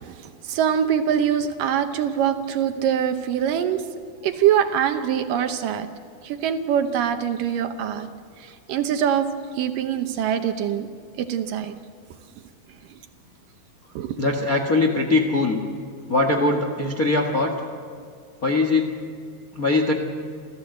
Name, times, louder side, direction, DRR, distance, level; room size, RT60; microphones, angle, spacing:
voice 1, 0.4-3.8 4.2-5.9 6.2-8.1 8.4-9.3 9.5-10.9 11.2-11.7 14.0-14.2, right 9 dB, 70° right, 7 dB, 2.4 m, -23 dB
voice 2, 14.2-15.6 16.1-17.5 18.4-18.9 19.5-19.9, left 2 dB, 45° left, 2 dB, 1.1 m, -21 dB
29.0 x 14.0 x 7.9 m, 2.2 s
omnidirectional pair, 4.3 m